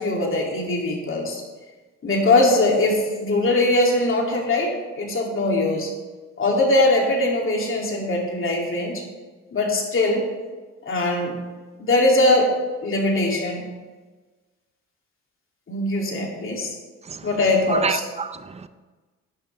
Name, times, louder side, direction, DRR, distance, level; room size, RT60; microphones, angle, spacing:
voice 1, 0.0-1.4 2.0-5.9 6.4-9.0 9.5-10.3 10.9-11.4 11.8-12.5 12.8-13.6 15.7-16.8 17.2-18.0, left 2 dB, 45° left, 2.7 m, -21 dB
voice 2, 17.7-18.7, right 5 dB, 20° right, 0.5 m, -28 dB
12.0 x 9.2 x 3.4 m
cardioid pair, 90°, 30 cm